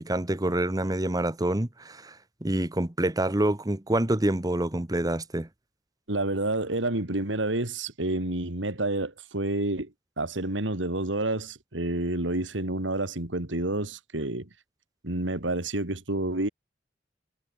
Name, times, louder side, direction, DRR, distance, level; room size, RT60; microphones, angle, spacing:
voice 1, 0.0-5.5, right 1 dB, 20° right, 1.2 m, -27 dB
voice 2, 6.1-9.9 10.2-14.5 15.0-16.5, right 2 dB, 80° right, 2.8 m, -29 dB
head